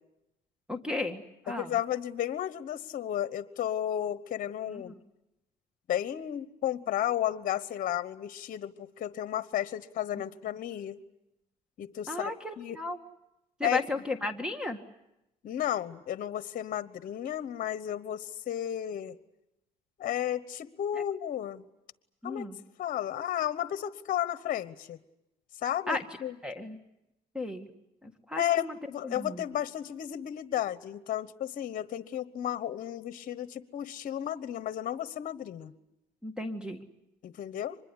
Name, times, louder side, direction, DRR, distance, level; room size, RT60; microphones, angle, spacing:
voice 1, 0.7-1.8 4.7-5.0 10.1-10.2 12.1-13.0 13.6-14.8 20.9-21.0 22.2-22.6 25.9-26.1 26.4-26.8 27.3-27.7 28.0-28.8 29.0-29.5 36.2-36.8, left 2 dB, 5° right, 8 dB, 1.8 m, -34 dB
voice 2, 1.5-4.9 5.9-11.0 11.8-12.3 12.6-12.8 13.6-13.8 15.4-19.2 20.0-21.6 22.2-22.5 22.8-25.0 25.6-26.4 28.3-35.7 37.2-37.8, left 11 dB, 55° left, 14 dB, 1.2 m, -33 dB
25.0 x 21.5 x 9.9 m, 0.89 s
cardioid pair, 110°, 17 cm